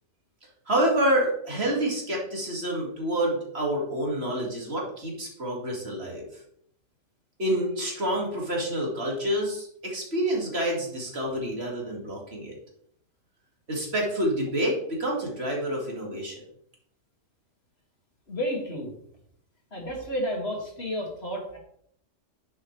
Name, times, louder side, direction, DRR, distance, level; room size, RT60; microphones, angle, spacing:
voice 1, 0.7-6.4 7.4-12.6 13.7-16.4, right 1 dB, 50° right, -2 dB, 2.4 m, -28 dB
voice 2, 18.3-18.9 19.7-21.6, equal, 50° left, -1 dB, 2.6 m, -31 dB
10.0 x 6.5 x 3.3 m, 0.68 s
omnidirectional pair, 1.4 m